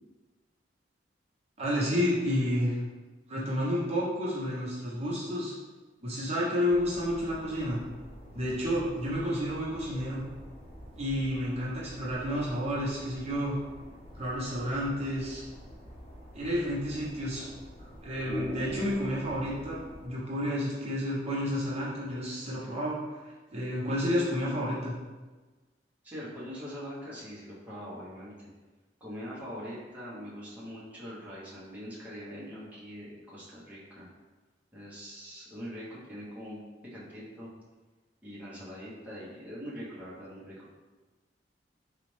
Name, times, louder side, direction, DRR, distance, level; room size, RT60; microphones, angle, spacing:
voice 1, 1.6-2.8 3.3-5.5 6.0-7.8 8.3-10.2 11.0-13.6 14.1-15.4 16.3-17.4 18.0-23.2 23.5-24.9, equal, 35° right, -7 dB, 0.9 m, -30 dB
sound 1, 6.7-20.1, equal, 35° left, 0.8 m, -45 dB
voice 2, 26.0-28.5 29.0-34.1 34.7-36.6 36.9-37.5 38.2-40.7, equal, 10° right, -9 dB, 0.9 m, -43 dB
4.0 x 2.4 x 3.2 m, 1.3 s
head